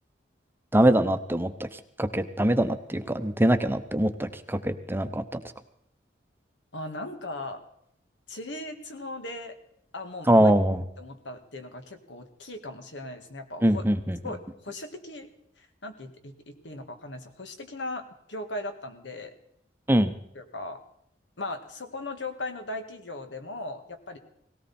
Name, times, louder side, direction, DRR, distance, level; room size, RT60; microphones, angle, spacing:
voice 1, 0.7-1.7 2.0-5.2 10.3-10.8 13.6-14.2 19.9-20.1, right 1 dB, 10° right, 9 dB, 0.8 m, -23 dB
voice 2, 6.7-7.6 8.3-9.6 9.9-10.5 11.0-13.8 14.2-15.3 15.6-19.3 20.3-20.8 21.4-24.2, left 2 dB, 85° left, 6 dB, 2.0 m, -38 dB
18.5 x 17.5 x 4.3 m, 0.75 s
head